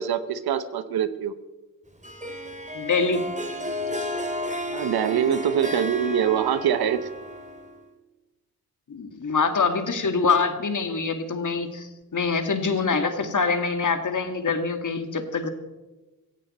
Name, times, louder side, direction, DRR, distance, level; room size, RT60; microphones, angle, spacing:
voice 1, 0.0-1.3 4.7-7.1, right 9 dB, 85° right, 13 dB, 1.0 m, -24 dB
Harp, 2.0-7.8, left 1 dB, 20° right, 2.4 m, -33 dB
voice 2, 2.7-3.2 8.9-15.5, left 4 dB, 55° left, 7 dB, 1.9 m, -25 dB
16.0 x 15.5 x 4.2 m, 1.2 s
cardioid pair, 55°, 36 cm